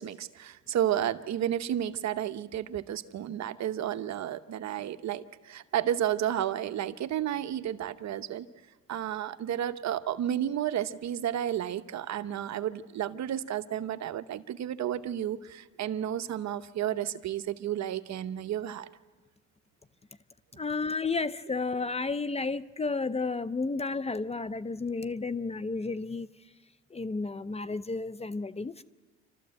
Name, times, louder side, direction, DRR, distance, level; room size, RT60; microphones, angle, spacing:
voice 1, 0.0-8.5 8.9-18.9, right 11 dB, 65° right, 0.9 m, -32 dB
voice 2, 20.6-26.3 26.9-28.8, left 4 dB, 20° left, 0.5 m, -32 dB
28.0 x 13.0 x 7.7 m
cardioid pair, 90°, 30 cm